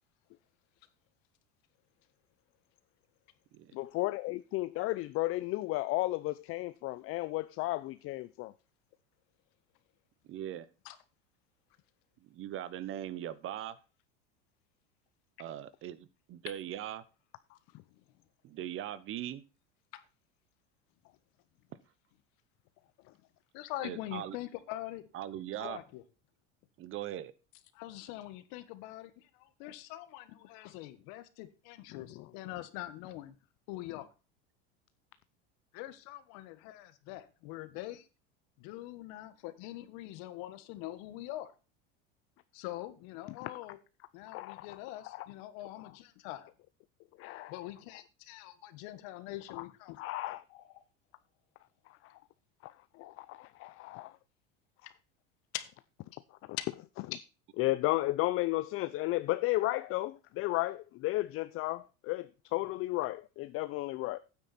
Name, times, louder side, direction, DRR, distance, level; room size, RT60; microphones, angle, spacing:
voice 1, 3.7-8.5 31.9-32.3 43.4-43.5 44.3-44.8 45.0-45.3 47.2-47.5 49.5-49.6 50.0-50.4 51.9-52.2 52.6-54.2 56.5-56.6 57.1-57.2 57.5-64.2, left 18 dB, 45° left, 0.5 m, -34 dB
voice 2, 10.3-10.7 12.3-13.8 15.4-17.0 18.4-19.4 23.8-24.4 25.1-25.8 26.8-27.3, right 11 dB, 40° right, 0.9 m, -40 dB
voice 3, 23.5-25.1 25.6-26.0 27.7-33.4 33.7-34.1 35.7-38.1 38.6-41.5 42.5-43.8 44.1-46.5 47.5-50.0 50.5-50.8 55.5-55.7 56.6-56.7, left 15 dB, 65° left, 1.5 m, -43 dB
9.3 x 8.7 x 4.2 m
supercardioid pair, 125°, 32 cm